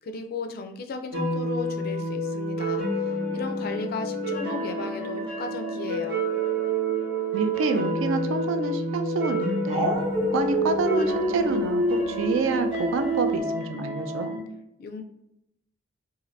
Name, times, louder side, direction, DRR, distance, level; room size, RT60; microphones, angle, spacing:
voice 1, 0.0-2.8 3.3-6.2 14.8-15.0, left 4 dB, 50° left, 6 dB, 0.3 m, -34 dB
sound 1, 1.1-14.4, right 1 dB, 60° right, 0.9 m, -29 dB
voice 2, 7.3-10.1 10.3-14.3, right 4 dB, 75° right, 8 dB, 0.3 m, -28 dB
Dog, 9.7-13.4, equal, 30° right, 0.7 m, -27 dB
2.6 x 2.4 x 3.0 m, 0.82 s
head